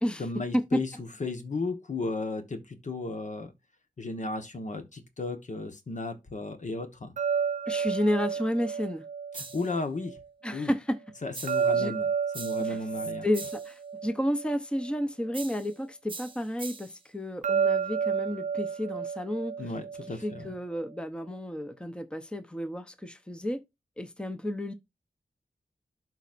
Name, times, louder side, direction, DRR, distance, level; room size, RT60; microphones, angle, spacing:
voice 1, 0.2-0.9 1.2-3.5 4.0-7.1 9.3-10.2 10.5-10.7 11.2-12.1 12.3-13.3 19.6-20.5, left 3 dB, 60° left, 1.2 m, -34 dB
sound 1, 7.2-10.2 11.5-15.0 17.4-20.5, right 6 dB, 55° right, 0.4 m, -31 dB
voice 2, 7.7-9.0 10.4-11.0 11.8-11.9 12.6-12.8 13.2-19.5 20.1-23.6 24.0-24.7, equal, 5° left, 0.8 m, -31 dB
sound 2, 9.3-9.8 11.3-11.8 12.3-12.8 13.3-13.8 15.3-15.8 16.1-17.0, right 3 dB, 35° right, 0.8 m, -42 dB
12.0 x 4.0 x 2.5 m
wide cardioid pair, 85°, 15 cm